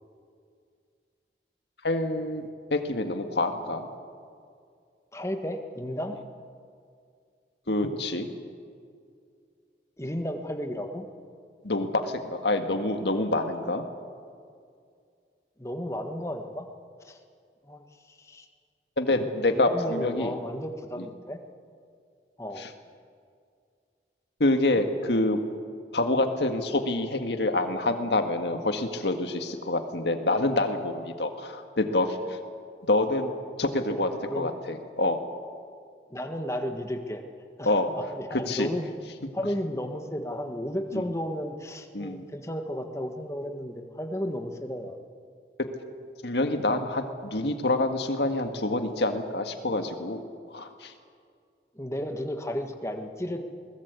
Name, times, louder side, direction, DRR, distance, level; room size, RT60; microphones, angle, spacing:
voice 1, 1.8-3.9 7.7-8.3 11.6-13.8 19.0-20.3 21.0-21.1 22.6-22.7 24.4-25.4 25.9-32.4 32.9-33.3 33.6-34.1 34.3-35.2 37.6-37.9 38.3-38.7 40.9-41.0 41.9-42.2 46.2-50.2 50.5-50.9, left 2 dB, 80° left, 6 dB, 1.8 m, -27 dB
voice 2, 5.1-6.2 10.0-11.1 15.6-16.7 17.0-17.2 17.6-18.5 19.5-21.4 22.4-22.6 33.2-33.3 33.9-34.0 34.3-34.5 36.1-37.2 37.6-38.9 39.3-45.0 51.7-53.4, equal, 15° left, 5 dB, 1.6 m, -33 dB
22.0 x 19.5 x 8.3 m, 2.2 s
head